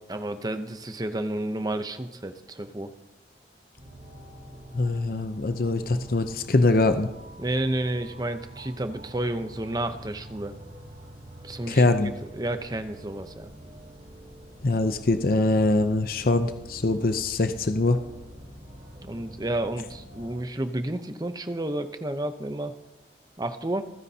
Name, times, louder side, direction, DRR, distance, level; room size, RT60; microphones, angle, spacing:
voice 1, 0.1-2.9 7.4-10.5 11.4-13.5 19.0-22.8 23.4-23.8, right 1 dB, 20° right, 9 dB, 0.8 m, -31 dB
sound 1, 3.8-20.3, right 1 dB, 45° right, 4.6 m, -45 dB
voice 2, 4.7-7.1 11.7-12.1 14.6-18.0, left 2 dB, 55° left, 8 dB, 0.7 m, -23 dB
28.0 x 9.6 x 2.8 m, 1.0 s
head